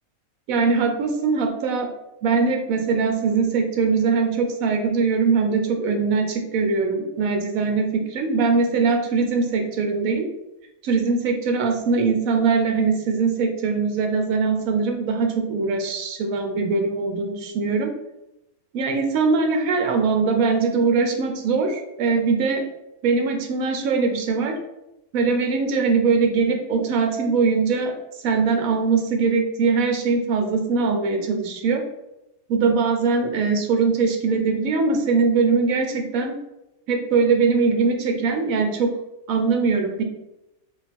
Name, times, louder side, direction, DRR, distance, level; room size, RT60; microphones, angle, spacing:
voice 1, 0.5-1.9 2.2-10.3 10.8-17.9 18.7-22.7 23.0-24.6 25.1-27.9 28.2-31.8 32.5-36.4 36.9-38.9 39.3-40.0, right 4 dB, 70° right, 4 dB, 1.1 m, -21 dB
3.6 x 2.4 x 4.2 m, 0.90 s
omnidirectional pair, 1.5 m